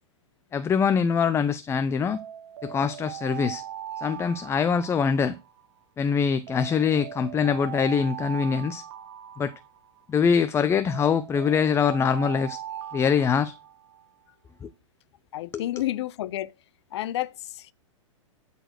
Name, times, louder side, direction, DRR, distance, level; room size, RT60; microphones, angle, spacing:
voice 1, 0.5-2.2 2.6-3.6 4.0-5.4 6.0-8.8 9.4-9.5 10.1-12.6 12.9-13.5 14.6-14.7 15.5-15.6, left 6 dB, 15° left, 0.5 m, -24 dB
Alarm, 2.1-5.8 6.5-10.2 10.9-14.1, right 11 dB, 60° right, 1.3 m, -40 dB
voice 2, 15.3-16.5 16.9-17.7, left 14 dB, 55° left, 0.7 m, -30 dB
12.0 x 4.1 x 6.5 m
hypercardioid pair, 105°, 16 cm